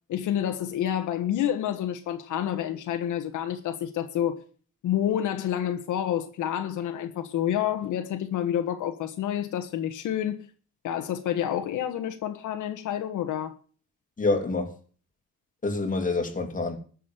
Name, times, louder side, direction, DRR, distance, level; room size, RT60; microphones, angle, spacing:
voice 1, 0.1-4.4 4.8-10.5 10.8-13.5, left 10 dB, 80° left, 1.4 m, -28 dB
voice 2, 14.2-14.7 15.6-16.8, left 3 dB, 25° left, 2.8 m, -27 dB
13.5 x 6.5 x 7.7 m
cardioid pair, 90°, 30 cm